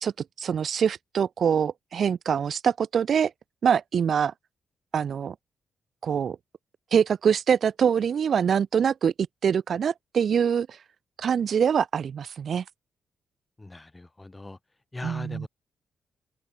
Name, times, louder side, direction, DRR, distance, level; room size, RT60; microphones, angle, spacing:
voice 1, 0.4-3.3 3.6-4.3 4.9-5.3 6.0-6.4 6.9-9.1 9.4-10.8 11.2-12.6 15.0-15.5, right 7 dB, 60° right, 0.8 m, -24 dB
voice 2, 13.6-14.6 14.9-15.5, left 2 dB, 20° left, 2.7 m, -39 dB
open air
cardioid pair, 75°, 0 cm